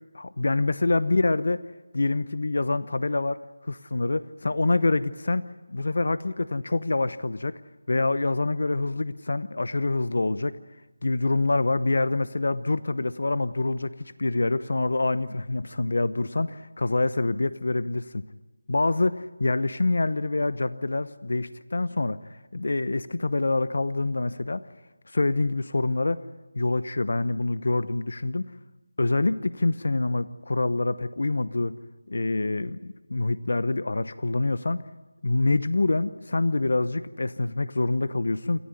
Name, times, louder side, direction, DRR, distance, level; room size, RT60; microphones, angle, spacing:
voice 1, 0.1-1.6 1.9-3.4 3.7-5.4 5.7-7.6 7.9-10.6 11.0-13.9 14.2-18.2 18.7-24.6 25.1-26.2 26.6-28.4 29.0-31.8 32.1-34.8 35.2-38.6, left 2 dB, 70° left, 15 dB, 0.9 m, -26 dB
27.5 x 14.5 x 9.8 m, 1.1 s
figure-of-eight pair, 170°, 0 cm